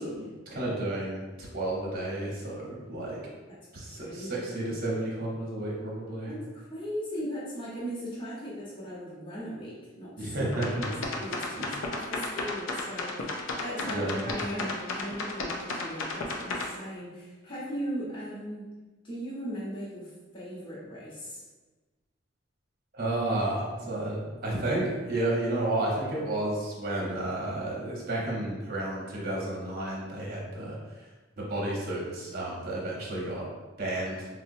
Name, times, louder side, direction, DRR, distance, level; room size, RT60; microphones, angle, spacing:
voice 1, 0.0-3.2 3.7-6.3 10.2-11.0 11.6-11.7 13.9-14.3 22.9-30.8 31.4-33.4 33.8-34.3, right 1 dB, 50° right, -4 dB, 0.9 m, -32 dB
voice 2, 3.5-4.4 6.2-10.4 10.7-18.7 19.0-21.4, equal, 25° left, -9 dB, 1.0 m, -38 dB
sound 1, 10.5-16.7, left 3 dB, 85° left, 0.5 m, -33 dB
4.2 x 2.1 x 2.6 m, 1.2 s
head